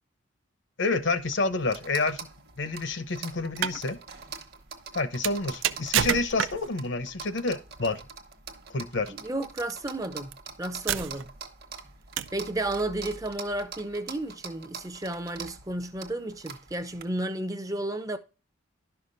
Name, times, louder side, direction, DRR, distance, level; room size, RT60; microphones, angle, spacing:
voice 1, 0.8-2.2 2.6-4.0 4.9-8.0 8.7-9.1, left 3 dB, 60° left, 0.8 m, -28 dB
sound 1, 1.0-17.0, right 5 dB, 50° right, 1.1 m, -44 dB
sound 2, 3.4-3.8 5.2-6.8 8.1-8.3 9.6-9.7 10.3-10.4 10.9-11.4 12.2-12.5, right 9 dB, 70° right, 0.5 m, -29 dB
voice 2, 9.1-10.3 10.6-11.3 12.3-18.2, right 1 dB, 15° right, 0.5 m, -32 dB
11.5 x 5.8 x 2.5 m
head